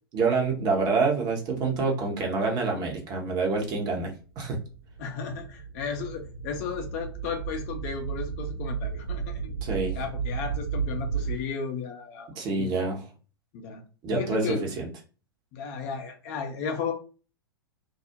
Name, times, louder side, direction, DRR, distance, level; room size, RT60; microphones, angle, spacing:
voice 1, 0.1-4.6 9.6-10.0 12.3-13.0 14.0-14.9, right 4 dB, 30° right, 1 dB, 0.7 m, -27 dB
sound 1, 4.4-11.4, right 6 dB, 65° right, 0.6 m, -33 dB
voice 2, 5.0-9.5 9.9-12.3 12.6-12.7 13.5-13.8 14.1-14.7 15.5-16.9, left 6 dB, 40° left, 4 dB, 0.5 m, -34 dB
2.3 x 2.0 x 2.7 m, 0.35 s
figure-of-eight pair, 95°, 13 cm